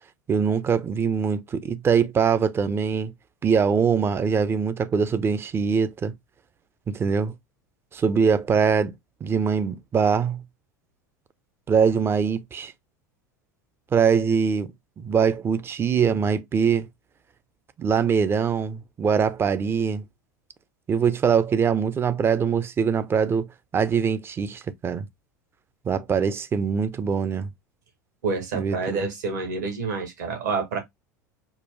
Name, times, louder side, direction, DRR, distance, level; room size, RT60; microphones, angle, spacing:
voice 1, 0.3-3.1 3.4-6.1 6.9-7.3 7.9-8.9 9.2-10.4 11.7-12.7 13.9-16.9 17.8-20.0 20.9-23.5 23.7-25.1 25.8-27.5 28.5-28.8, right 6 dB, 25° right, 0.5 m, -23 dB
voice 2, 28.2-30.8, right 4 dB, 65° right, 1.3 m, -28 dB
4.6 x 2.2 x 3.1 m
figure-of-eight pair, 75°, 10 cm